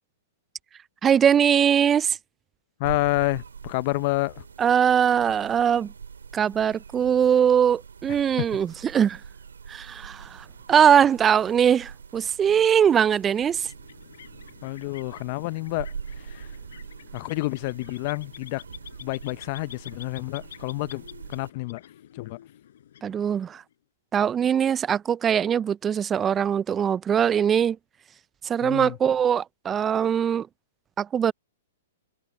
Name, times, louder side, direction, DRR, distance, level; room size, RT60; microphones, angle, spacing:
voice 1, 1.0-2.2 4.6-5.9 6.3-9.2 9.7-13.7 23.0-23.6 24.1-27.8 28.4-30.5 31.0-31.3, right 8 dB, 20° right, 0.5 m, -21 dB
voice 2, 2.8-4.4 8.4-8.6 14.6-16.5 17.1-18.6 19.0-21.0 21.3-21.8 22.1-22.4 28.6-29.0, left 23 dB, 45° left, 0.7 m, -29 dB
sound 1, 2.8-21.5, right 6 dB, 80° right, 3.4 m, -43 dB
sound 2, 13.4-23.7, left 10 dB, 65° left, 4.7 m, -49 dB
hypercardioid pair, 120°, 0 cm